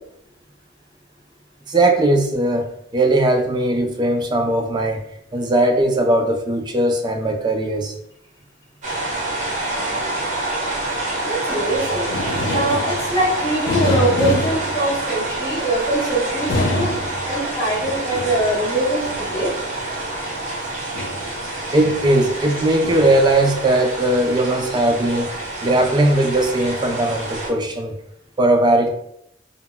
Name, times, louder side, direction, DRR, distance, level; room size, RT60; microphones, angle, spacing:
voice 1, 1.7-5.0 5.3-8.0 21.7-25.3 25.6-28.0 28.4-28.9, right 1 dB, 25° right, 4 dB, 0.3 m, -18 dB
sound 1, 8.8-27.5, right 2 dB, 40° right, 0.8 m, -27 dB
voice 2, 11.2-12.1 12.5-16.9 17.2-19.6, right 1 dB, 20° left, -6 dB, 0.9 m, -22 dB
sound 2, 11.7-15.5 16.3-20.0 20.9-23.8 24.7-24.9 26.3-27.1 27.5-27.7, left 2 dB, 75° left, 0.4 m, -28 dB
2.1 x 2.0 x 3.7 m, 0.75 s
head